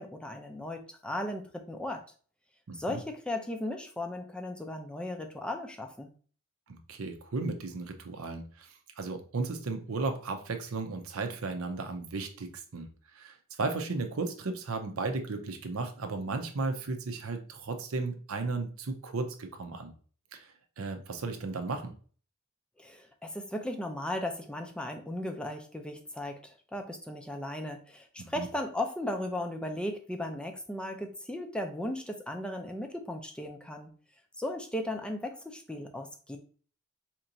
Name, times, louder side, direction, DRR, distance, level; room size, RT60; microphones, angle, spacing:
voice 1, 0.0-2.0 2.7-6.1 22.8-33.9 34.4-36.4, left 1 dB, 5° left, 4 dB, 0.4 m, -36 dB
voice 2, 2.7-3.0 6.7-19.9 20.3-21.9 28.2-28.5, right 3 dB, 70° right, 6 dB, 0.6 m, -35 dB
4.4 x 2.9 x 2.6 m, 0.42 s
head